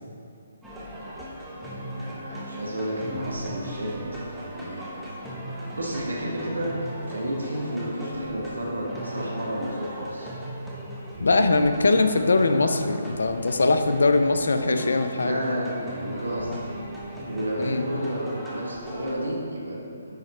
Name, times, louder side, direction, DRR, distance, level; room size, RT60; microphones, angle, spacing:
sound 1, 0.6-19.1, equal, ahead, 1.2 m, -38 dB
voice 1, 1.8-4.9 5.7-10.3 14.5-14.9 15.1-16.6 17.2-20.1, right 1 dB, 85° right, -3 dB, 1.3 m, -31 dB
sound 2, 3.1-10.0, right 3 dB, 20° right, 0.8 m, -47 dB
voice 2, 11.2-15.4 17.6-17.8, left 3 dB, 75° left, 8 dB, 0.6 m, -21 dB
9.6 x 4.4 x 4.1 m, 2.4 s
figure-of-eight pair, 140°, 0 cm